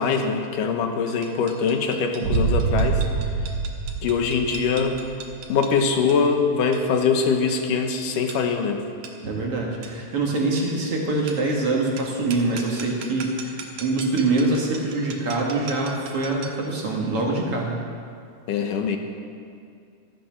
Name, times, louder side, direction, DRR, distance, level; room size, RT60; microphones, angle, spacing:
voice 1, 0.0-3.0 4.0-5.0 5.5-8.8 18.5-19.0, left 5 dB, 75° left, 5 dB, 2.5 m, -23 dB
sound 1, 1.2-16.7, right 5 dB, 65° right, 2.5 m, -42 dB
sound 2, 2.2-5.2, right 4 dB, 80° right, 3.4 m, -25 dB
voice 2, 9.2-17.9, right 2 dB, 50° right, -1 dB, 2.2 m, -24 dB
14.5 x 13.0 x 6.2 m, 2.3 s
omnidirectional pair, 4.1 m